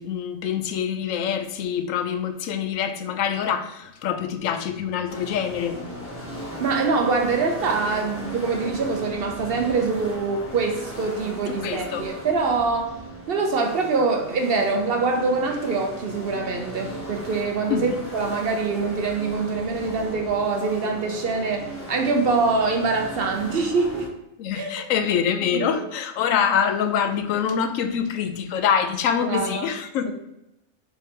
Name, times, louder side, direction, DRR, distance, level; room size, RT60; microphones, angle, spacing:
voice 1, 0.0-5.8 11.6-12.1 17.7-18.0 24.4-30.1, left 8 dB, 85° left, 1.0 m, -25 dB
sound 1, 5.1-24.1, left 1 dB, 10° left, 1.0 m, -37 dB
voice 2, 6.6-13.0 13.3-24.1 24.5-24.7 25.5-25.9 29.2-29.7 30.0-30.1, right 4 dB, 60° right, 0.7 m, -24 dB
3.7 x 3.3 x 4.2 m
omnidirectional pair, 1.3 m